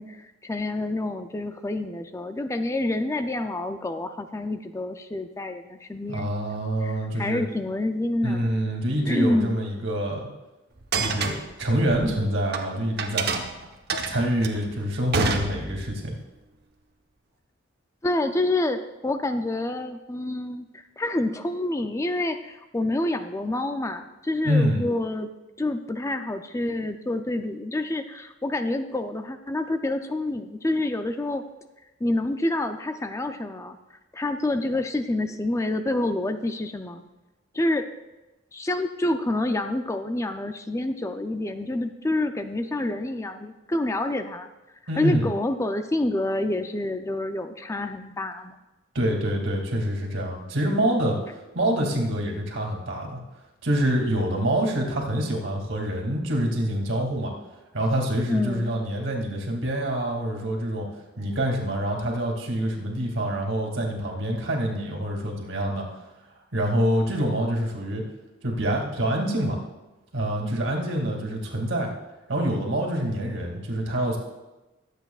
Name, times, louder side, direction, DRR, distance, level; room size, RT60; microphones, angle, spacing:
voice 1, 0.0-6.4 6.8-8.5 9.1-9.6 18.0-20.7 21.0-25.3 25.6-31.4 32.0-33.8 34.1-37.0 37.5-37.9 38.5-44.5 45.0-48.6 58.3-58.7, left 2 dB, 15° left, 8 dB, 0.4 m, -28 dB
voice 2, 6.1-7.4 8.2-10.3 10.9-13.3 14.1-16.2 24.4-24.8 44.9-45.3 48.9-51.2 51.5-53.2 53.6-57.3 57.7-60.9 61.2-65.8 66.5-68.0 68.4-69.6 70.1-71.9 72.3-74.2, right 1 dB, 80° right, 0 dB, 2.4 m, -26 dB
sound 1, 10.8-12.6 13.0-16.0, right 4 dB, 55° right, 1.0 m, -28 dB
22.5 x 8.2 x 2.4 m, 1.0 s
head